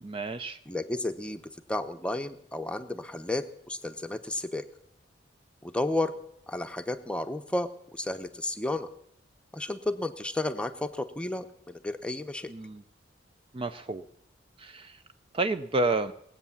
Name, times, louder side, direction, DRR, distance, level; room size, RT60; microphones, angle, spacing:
voice 1, 0.0-0.6 12.5-12.8 13.5-14.0 14.6-15.0 15.3-16.1, right 2 dB, 30° right, 10 dB, 0.5 m, -30 dB
voice 2, 0.7-1.4 1.7-4.6 5.6-6.1 6.5-8.9 9.5-12.5, left 2 dB, 5° left, 9 dB, 0.8 m, -32 dB
19.0 x 8.2 x 7.1 m, 0.71 s
head